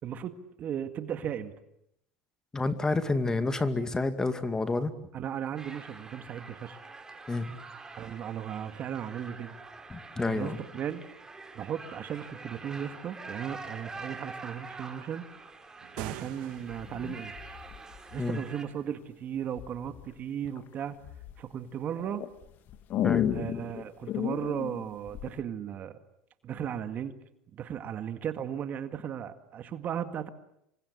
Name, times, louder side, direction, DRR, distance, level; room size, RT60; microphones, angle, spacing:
voice 1, 0.0-1.5 5.1-6.8 8.0-9.6 10.2-11.0 11.5-15.3 15.9-17.6 18.1-21.0 21.4-22.2 23.3-26.0 26.4-27.2 27.5-30.3, right 9 dB, 40° right, 10 dB, 1.9 m, -36 dB
voice 2, 2.5-4.9 7.3-7.5 9.9-10.6 18.2-18.4 23.0-23.3, left 3 dB, 15° left, 10 dB, 2.2 m, -29 dB
sound 1, 5.6-18.6, right 3 dB, 15° right, 3.7 m, -46 dB
sound 2, 15.8-17.1, right 16 dB, 75° right, 2.0 m, -42 dB
sound 3, 16.7-18.6 19.6-20.1 20.6-21.4 22.0-25.4, left 11 dB, 50° left, 1.7 m, -33 dB
27.5 x 24.0 x 8.3 m, 0.79 s
supercardioid pair, 110°, 4 cm